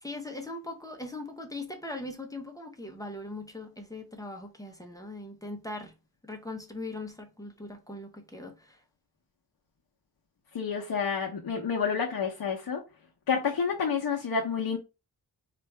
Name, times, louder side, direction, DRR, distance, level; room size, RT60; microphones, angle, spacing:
voice 1, 0.0-5.9 6.2-8.8, left 2 dB, 10° left, 0.7 m, -40 dB
voice 2, 10.5-12.8 13.3-14.8, left 6 dB, 70° left, 0.8 m, -29 dB
4.5 x 2.5 x 3.2 m
wide cardioid pair, 115°, 39 cm